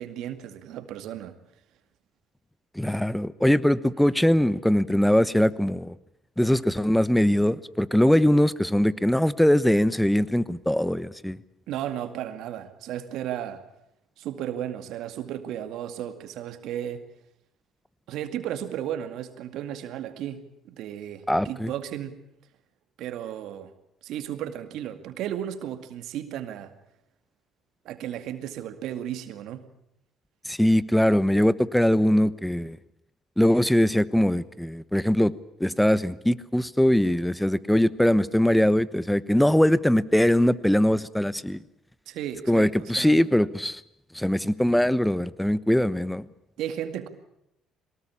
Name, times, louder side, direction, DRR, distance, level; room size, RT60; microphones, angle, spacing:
voice 1, 0.0-1.4 11.7-13.6 14.2-17.0 18.1-22.2 23.0-23.7 24.0-26.7 27.8-29.6 42.1-43.2 46.6-47.1, right 10 dB, 75° right, 8 dB, 2.2 m, -34 dB
voice 2, 2.8-5.9 6.4-11.4 21.3-21.7 30.5-32.8 33.4-35.3 35.6-41.6 42.5-43.8 44.1-46.2, left 1 dB, 5° left, 17 dB, 1.0 m, -21 dB
23.0 x 19.5 x 8.7 m, 0.80 s
supercardioid pair, 70°, 0 cm